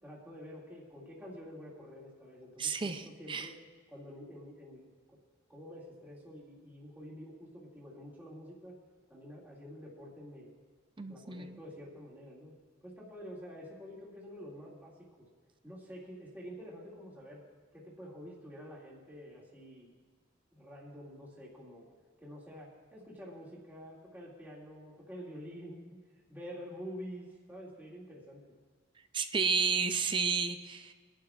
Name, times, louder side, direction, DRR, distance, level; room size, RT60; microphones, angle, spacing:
voice 1, 0.0-3.6 3.9-5.2 5.5-8.8 9.1-10.5 11.0-12.5 12.8-15.3 15.6-17.4 17.7-19.9 20.5-21.9 22.2-26.0 26.3-28.4, equal, 10° right, -6 dB, 2.2 m, -48 dB
voice 2, 2.6-3.5 11.0-11.6 29.1-30.9, right 5 dB, 25° right, 8 dB, 0.5 m, -32 dB
24.5 x 11.5 x 2.4 m, 1.4 s
head